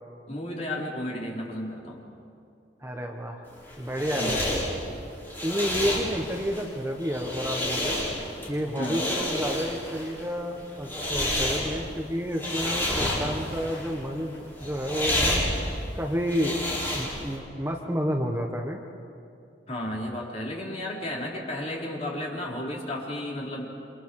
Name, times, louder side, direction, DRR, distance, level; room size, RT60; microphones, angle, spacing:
voice 1, 0.3-2.0 4.1-4.4 8.8-9.0 19.7-23.7, left 1 dB, 35° left, -3 dB, 4.4 m, -33 dB
voice 2, 2.8-3.4 3.8-4.5 5.4-8.0 8.5-15.4 15.9-16.6 16.9-18.8, equal, 15° right, 1 dB, 1.3 m, -30 dB
sound 1, 3.5-17.4, left 1 dB, 10° left, 6.6 m, -30 dB
29.5 x 26.5 x 4.9 m, 2.5 s
head